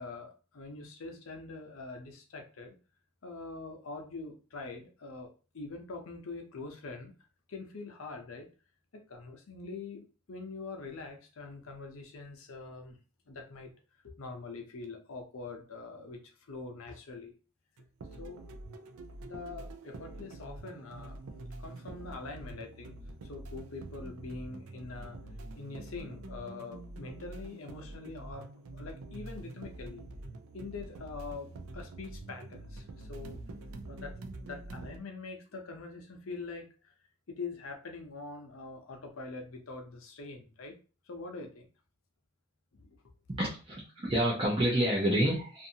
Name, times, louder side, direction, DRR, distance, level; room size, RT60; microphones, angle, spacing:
voice 1, 0.0-2.7 3.2-7.1 7.5-8.5 8.9-13.0 13.3-13.7 14.0-17.3 18.2-18.4 19.2-21.2 21.6-23.0 23.2-25.2 25.5-28.5 28.7-30.0 30.5-33.4 33.8-34.1 34.4-36.9 37.3-40.8 41.0-41.7 42.7-43.0, left 3 dB, 70° left, 4 dB, 0.6 m, -44 dB
sound 1, 17.8-35.0, right 2 dB, 75° right, 0.4 m, -46 dB
voice 2, 43.3-45.7, right 1 dB, 25° right, -4 dB, 0.5 m, -28 dB
2.6 x 2.5 x 2.7 m, 0.35 s
head